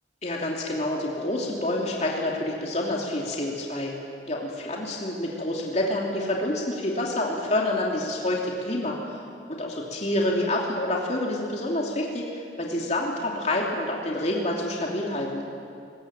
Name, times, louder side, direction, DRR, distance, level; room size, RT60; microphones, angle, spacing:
voice 1, 0.2-3.9 4.3-9.0 9.5-15.4, left 1 dB, 40° left, -2 dB, 3.0 m, -28 dB
23.0 x 21.0 x 8.9 m, 2.4 s
head